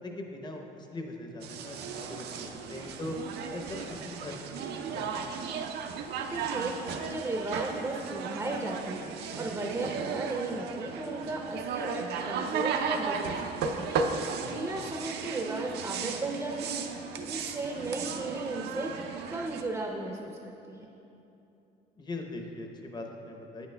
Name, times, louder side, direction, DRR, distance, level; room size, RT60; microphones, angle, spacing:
voice 1, 0.0-3.2 3.5-5.3 14.4-14.7 22.0-23.7, left 2 dB, 25° left, 3 dB, 0.7 m, -41 dB
sound 1, 1.4-19.6, right 5 dB, 75° right, 0.5 m, -35 dB
voice 2, 6.2-6.7 7.1-9.0 9.3-13.8 14.5-16.8 17.2-18.9 19.3-20.9, right 2 dB, 15° right, 1 dB, 0.5 m, -35 dB
8.8 x 8.1 x 2.2 m, 2.9 s
cardioid pair, 110°, 17 cm